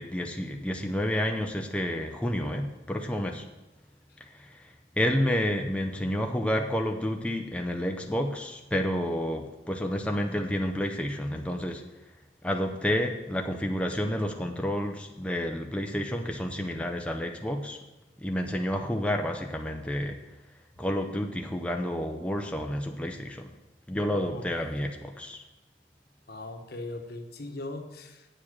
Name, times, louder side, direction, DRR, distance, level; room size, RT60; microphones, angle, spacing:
voice 1, 0.0-3.4 4.2-11.8 12.4-17.8 18.2-20.2 20.8-23.5 23.9-25.4, equal, 5° left, 3 dB, 0.6 m, -30 dB
voice 2, 24.1-24.5 26.3-28.3, left 2 dB, 60° left, 5 dB, 1.1 m, -39 dB
8.7 x 7.3 x 6.4 m, 1.0 s
head